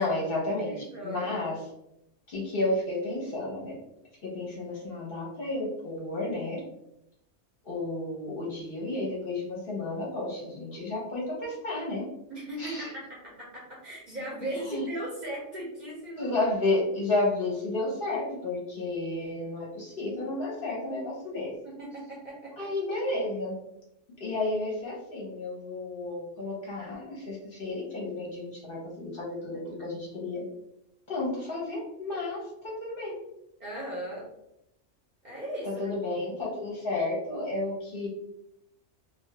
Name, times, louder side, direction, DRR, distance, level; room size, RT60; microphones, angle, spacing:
voice 1, 0.0-1.6 2.3-3.8 4.2-6.6 7.6-12.1 12.6-12.9 14.5-14.8 16.2-21.5 22.6-23.6 24.2-30.4 31.1-33.2 35.6-38.1, left 2 dB, 55° left, -4 dB, 0.8 m, -32 dB
voice 2, 0.7-1.3 12.3-16.3 21.6-22.7 33.6-34.3 35.2-36.2, right 1 dB, 45° right, -6 dB, 0.6 m, -38 dB
2.3 x 2.2 x 2.7 m, 0.81 s
omnidirectional pair, 1.3 m